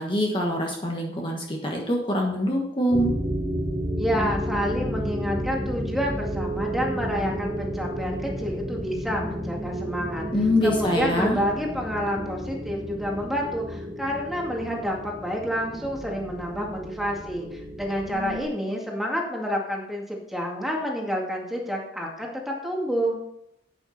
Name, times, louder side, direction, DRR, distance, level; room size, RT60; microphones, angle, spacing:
voice 1, 0.0-3.1 10.3-11.4, equal, 30° left, 0 dB, 1.4 m, -24 dB
sound 1, 2.9-18.4, equal, 25° right, 1.9 m, -32 dB
voice 2, 4.0-10.3 10.6-23.2, equal, ahead, -1 dB, 2.1 m, -29 dB
10.5 x 9.0 x 4.2 m, 0.77 s
head